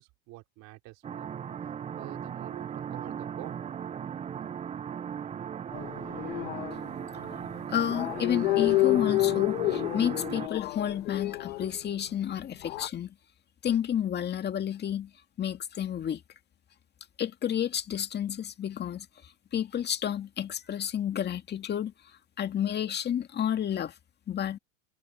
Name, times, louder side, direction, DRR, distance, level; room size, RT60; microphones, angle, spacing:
voice 1, 0.0-1.3 1.9-3.6, right 20 dB, 55° right, 4.7 m, -47 dB
sound 1, 1.0-10.5, right 8 dB, 20° right, 0.6 m, -38 dB
sound 2, 5.7-7.3 7.9-11.8 12.4-12.9, left 18 dB, 80° left, 1.9 m, -29 dB
voice 2, 7.7-13.1 13.6-15.1 15.4-16.2 17.2-21.9 22.4-24.0 24.3-24.6, left 9 dB, 30° left, 2.0 m, -31 dB
hypercardioid pair, 105°, 34 cm